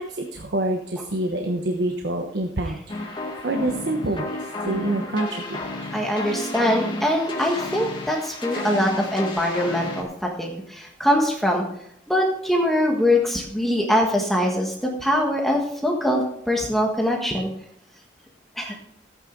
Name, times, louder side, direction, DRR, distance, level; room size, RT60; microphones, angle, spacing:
voice 1, 0.0-5.9, right 1 dB, 65° right, 4 dB, 1.1 m, -27 dB
sound 1, 2.9-10.0, left 2 dB, 25° left, 2.0 m, -32 dB
voice 2, 5.9-11.6 12.1-17.5 18.6-18.8, left 1 dB, ahead, -1 dB, 1.5 m, -23 dB
14.0 x 9.0 x 3.9 m, 0.74 s
head